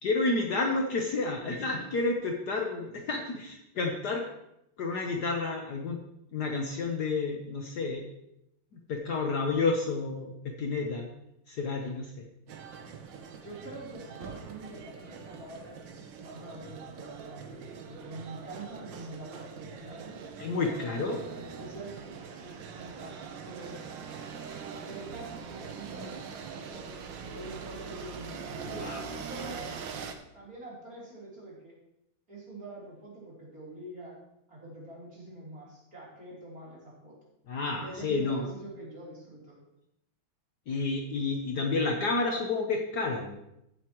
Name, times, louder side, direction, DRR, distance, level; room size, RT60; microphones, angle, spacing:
voice 1, 0.0-4.2 4.8-6.0 6.3-8.1 8.9-11.1 11.5-12.3 20.4-21.2 28.6-29.0 37.5-38.5 40.7-43.4, left 3 dB, 55° left, 2 dB, 1.4 m, -30 dB
sound 1, 12.5-30.1, right 6 dB, 65° right, 1.5 m, -43 dB
voice 2, 13.4-22.0 22.3-23.9 24.8-29.6 30.3-31.7 32.3-34.2 34.5-37.2 37.7-39.6, right 2 dB, 40° right, -6 dB, 4.0 m, -45 dB
14.5 x 8.2 x 3.0 m, 0.83 s
omnidirectional pair, 2.3 m